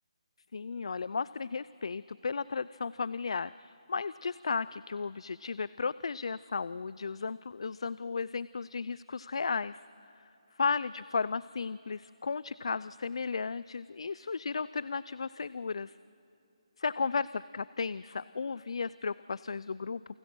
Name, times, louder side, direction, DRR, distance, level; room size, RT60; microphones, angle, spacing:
voice 1, 0.5-9.8 10.6-16.0 16.8-20.0, left 5 dB, 60° left, 18 dB, 0.4 m, -34 dB
28.5 x 19.0 x 6.2 m, 2.9 s
hypercardioid pair, 170°, 3 cm